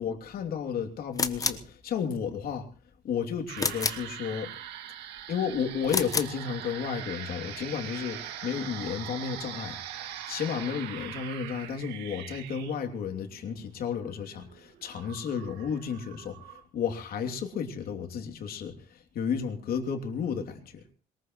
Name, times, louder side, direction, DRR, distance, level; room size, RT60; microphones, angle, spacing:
voice 1, 0.0-2.7 3.0-4.5 5.3-20.8, left 7 dB, 60° left, 4 dB, 2.9 m, -33 dB
sound 1, 1.1-1.7 3.6-4.1 5.8-6.4, left 4 dB, 20° left, 1.2 m, -29 dB
sound 2, 3.5-16.6, right 10 dB, 85° right, 2.1 m, -42 dB
22.5 x 20.0 x 3.1 m, 0.37 s
cardioid pair, 110°, 17 cm